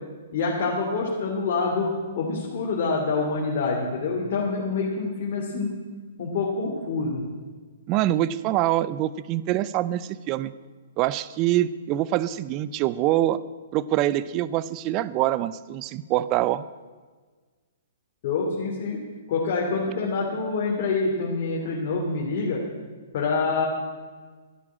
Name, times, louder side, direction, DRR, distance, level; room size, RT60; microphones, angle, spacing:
voice 1, 0.3-5.7 6.2-7.2 18.2-19.0 19.3-22.6 23.1-23.6, left 4 dB, 50° left, -3 dB, 3.1 m, -26 dB
voice 2, 7.9-10.5 11.0-13.4 13.7-16.6, right 14 dB, 35° right, 17 dB, 0.6 m, -24 dB
12.5 x 11.0 x 8.7 m, 1.4 s
figure-of-eight pair, 120°, 0 cm